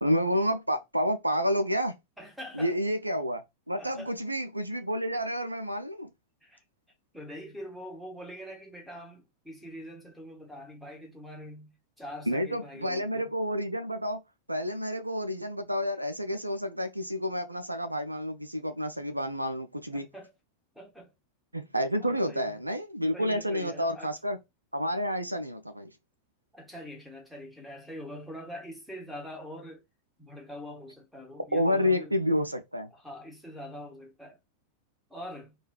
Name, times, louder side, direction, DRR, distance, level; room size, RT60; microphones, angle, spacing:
voice 1, 0.0-1.9 2.5-6.1 12.3-14.2 14.5-20.1 21.5-24.4 24.7-25.9 31.5-32.9, equal, 85° right, 0.4 m, -29 dB
voice 2, 2.2-2.7 3.8-4.1 6.4-6.6 7.1-13.3 19.9-20.3 20.7-21.1 22.0-22.6 23.1-24.1 26.5-29.8 30.2-32.2 32.9-34.4 35.1-35.6, equal, ahead, 1.2 m, -44 dB
3.1 x 2.3 x 2.2 m
figure-of-eight pair, 90°, 0 cm